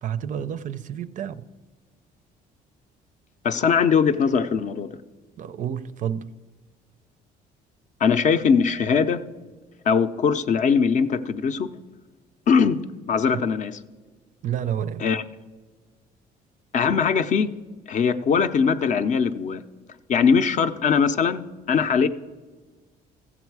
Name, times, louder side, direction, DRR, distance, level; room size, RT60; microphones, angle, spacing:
voice 1, 0.0-1.4 5.4-6.3 13.3-13.5 14.4-15.1, right 9 dB, 50° right, 0.4 m, -30 dB
voice 2, 3.4-5.0 8.0-9.2 9.9-11.7 12.5-12.8 13.1-13.8 15.0-15.2 16.7-17.5 17.9-19.6 20.1-22.1, left 6 dB, 45° left, 0.5 m, -21 dB
14.5 x 7.3 x 4.7 m
cardioid pair, 110°, 17 cm